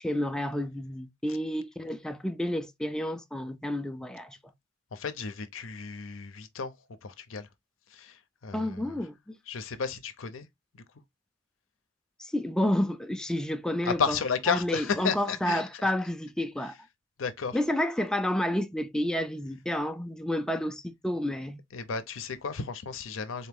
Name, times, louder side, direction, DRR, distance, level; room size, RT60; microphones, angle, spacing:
voice 1, 0.0-4.4 8.5-9.4 12.2-14.2 14.5-16.7 17.5-21.6, left 1 dB, 5° left, 0.3 m, -30 dB
voice 2, 4.9-6.8 7.0-7.5 7.9-9.0 9.5-10.5 10.7-10.8 13.8-15.9 16.6-16.7 17.2-17.6 21.7-23.5, left 5 dB, 85° left, 0.7 m, -33 dB
3.9 x 2.9 x 3.5 m
head